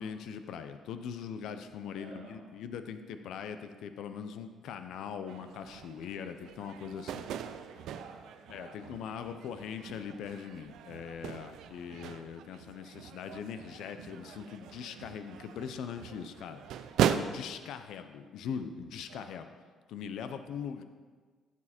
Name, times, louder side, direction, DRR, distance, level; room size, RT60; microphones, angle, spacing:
voice 1, 0.0-7.3 8.5-16.6 17.1-19.5 19.9-20.8, left 7 dB, 65° left, 9 dB, 0.7 m, -41 dB
voice 2, 2.0-2.5 7.2-9.4 19.1-19.5, right 4 dB, 85° right, -1 dB, 2.4 m, -53 dB
sound 1, 5.3-17.2, right 10 dB, 70° right, 0.5 m, -38 dB
14.0 x 7.3 x 4.4 m, 1.5 s
cardioid pair, 160°, 0 cm